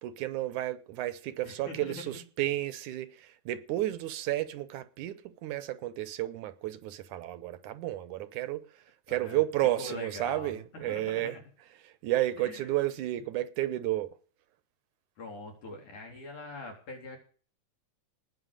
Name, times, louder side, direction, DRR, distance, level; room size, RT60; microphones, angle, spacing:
voice 1, 0.0-11.4 11.9-14.1, right 15 dB, 80° right, 2.4 m, -32 dB
voice 2, 1.4-2.2 9.1-9.4 9.8-11.4 12.4-12.7 15.2-17.2, left 2 dB, 75° left, 5.3 m, -43 dB
19.0 x 6.4 x 6.6 m
omnidirectional pair, 3.5 m